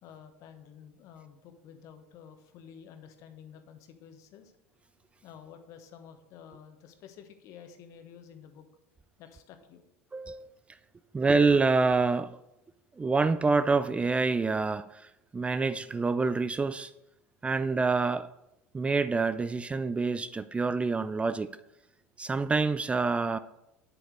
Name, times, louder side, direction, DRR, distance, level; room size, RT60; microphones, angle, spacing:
voice 1, 0.0-4.5 5.2-8.6 9.2-9.8, left 8 dB, 55° left, 1.4 m, -51 dB
voice 2, 10.1-10.5 11.1-12.4 13.0-16.9 17.4-18.3 18.7-21.6 22.2-23.4, right 4 dB, 20° right, 0.4 m, -27 dB
8.7 x 8.1 x 4.8 m
hypercardioid pair, 75°, 7 cm